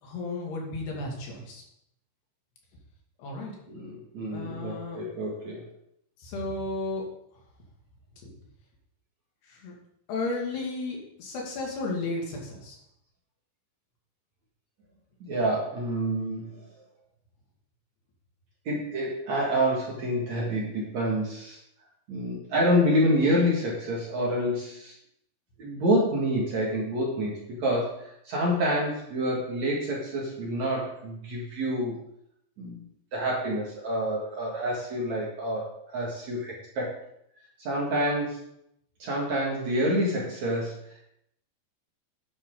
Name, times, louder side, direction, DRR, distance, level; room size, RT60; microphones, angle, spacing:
voice 1, 0.0-1.6 3.2-3.5 4.3-5.0 6.2-7.1 9.5-9.7 10.1-12.8, left 2 dB, 70° left, -1 dB, 4.2 m, -33 dB
voice 2, 3.7-5.6 15.2-16.7 18.7-21.6 22.1-24.9 25.6-32.0 32.6-32.8 33.1-36.9 37.6-38.4 39.0-41.0, equal, 50° right, -3 dB, 2.6 m, -28 dB
10.5 x 10.0 x 3.8 m, 0.76 s
omnidirectional pair, 5.0 m